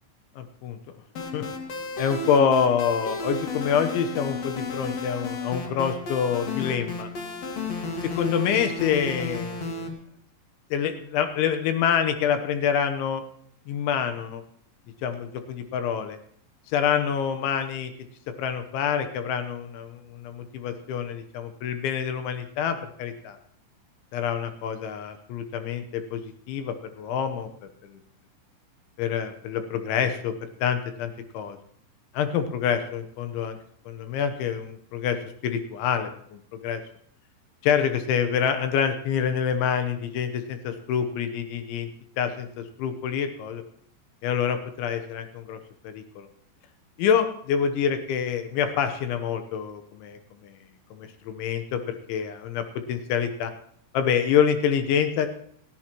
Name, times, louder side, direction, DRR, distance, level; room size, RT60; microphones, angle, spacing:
voice 1, 0.4-0.8 1.3-1.4 2.0-7.1 8.0-9.9 10.7-13.2 13.7-14.4 15.0-16.2 16.7-17.9 18.4-23.4 24.1-27.5 27.8-28.0 29.0-31.6 32.1-33.6 33.9-36.8 37.6-41.9 42.2-43.6 44.2-46.3 47.0-50.6 50.9-53.5 53.9-55.3, left 7 dB, 75° left, 8 dB, 3.2 m, -26 dB
sound 1, 1.2-9.9, left 3 dB, 55° left, 2.0 m, -33 dB
28.5 x 10.5 x 3.0 m, 0.66 s
omnidirectional pair, 5.6 m